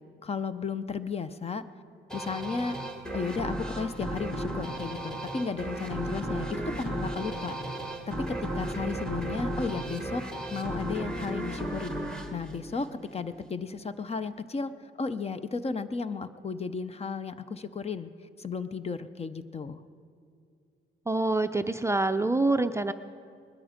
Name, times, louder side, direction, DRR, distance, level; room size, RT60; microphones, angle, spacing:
voice 1, 0.2-1.6 2.1-2.8 3.1-7.6 8.1-10.2 10.5-11.9 12.3-14.7 15.0-18.1 18.4-19.8, left 5 dB, 30° left, 13 dB, 0.7 m, -34 dB
sound 1, 2.1-13.3, right 1 dB, 5° left, 1.7 m, -34 dB
voice 2, 21.1-22.9, right 2 dB, 15° right, 8 dB, 0.5 m, -26 dB
20.5 x 12.5 x 5.1 m, 2.4 s
cardioid pair, 90°, 20 cm